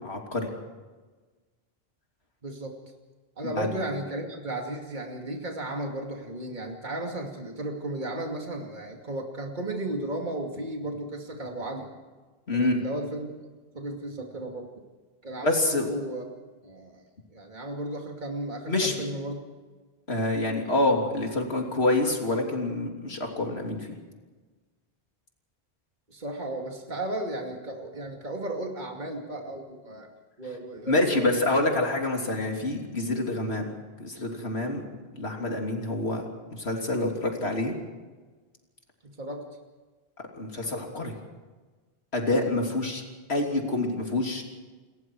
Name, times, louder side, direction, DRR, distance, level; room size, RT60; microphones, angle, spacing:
voice 1, 0.0-0.5 3.5-3.7 12.5-12.8 15.4-15.9 18.7-19.0 20.1-23.9 30.9-33.7 34.0-34.8 35.1-37.8 40.3-41.1 42.1-43.0 43.3-44.4, left 2 dB, 90° left, 1 dB, 3.4 m, -27 dB
voice 2, 2.4-2.7 3.4-11.9 12.5-13.3 13.7-14.7 15.2-16.2 16.6-17.0 17.3-19.4 26.1-30.1 30.4-31.7 39.2-39.4 42.2-42.5, right 1 dB, 45° right, 1 dB, 2.7 m, -34 dB
29.5 x 21.5 x 4.7 m, 1.3 s
omnidirectional pair, 1.1 m